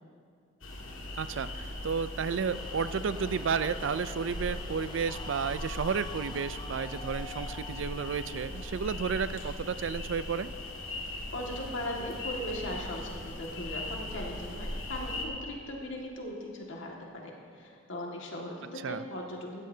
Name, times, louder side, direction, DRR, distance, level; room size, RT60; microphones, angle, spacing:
sound 1, 0.6-15.3, left 1 dB, 85° left, 1.8 m, -39 dB
voice 1, 1.2-10.5 18.8-19.0, right 6 dB, 65° right, 13 dB, 0.4 m, -32 dB
sound 2, 2.3-10.0, left 3 dB, 20° left, 0.4 m, -48 dB
voice 2, 11.3-19.6, left 1 dB, 65° left, -1 dB, 2.0 m, -38 dB
16.5 x 14.0 x 2.8 m, 2.4 s
head